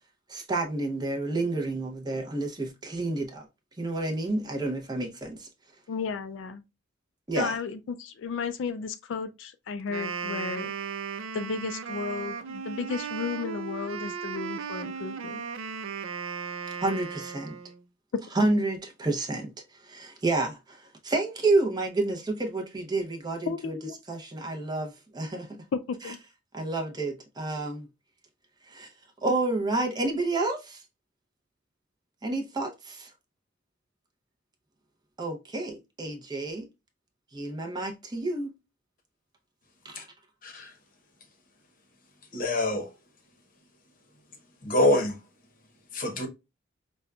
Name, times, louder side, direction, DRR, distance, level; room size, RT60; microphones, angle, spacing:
voice 1, 0.3-3.4 3.8-5.5 7.3-7.5 16.8-17.6 18.4-19.5 19.8-23.8 24.1-25.6 26.5-27.9 28.7-28.9 29.2-30.8 32.2-33.1 35.2-36.7 37.3-38.5 39.8-40.1, right 2 dB, 20° right, 0.6 m, -29 dB
voice 2, 5.9-6.6 7.3-10.7 11.3-15.4 23.5-24.0 25.7-26.2, left 5 dB, 65° left, 0.3 m, -33 dB
Wind instrument woodwind instrument, 9.8-17.8, right 6 dB, 90° right, 0.4 m, -36 dB
voice 3, 40.4-40.7 42.3-42.9 44.6-45.2 45.9-46.3, left 1 dB, 45° left, 0.8 m, -25 dB
5.1 x 2.2 x 2.2 m
head